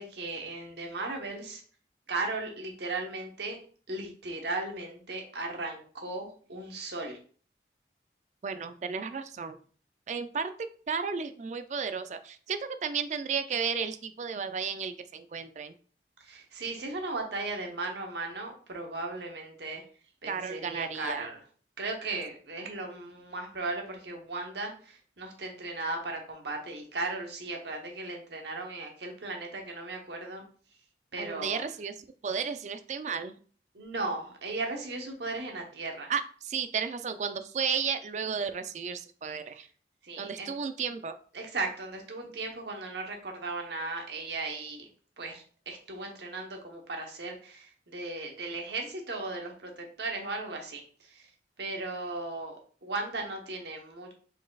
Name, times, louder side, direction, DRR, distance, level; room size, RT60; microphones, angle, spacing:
voice 1, 0.0-1.6 2.1-3.6 3.9-7.2 16.2-19.8 20.2-21.4 21.8-30.4 31.1-31.6 33.7-36.1 40.0-40.5 41.3-44.9 45.2-51.3 51.6-54.1, right 3 dB, 75° right, 3 dB, 1.0 m, -36 dB
voice 2, 8.4-9.6 10.1-10.5 10.9-15.7 20.3-21.3 31.2-31.9 32.2-33.3 36.1-39.7 40.2-41.2, right 6 dB, 40° right, 10 dB, 0.3 m, -33 dB
4.9 x 4.1 x 2.3 m, 0.44 s
head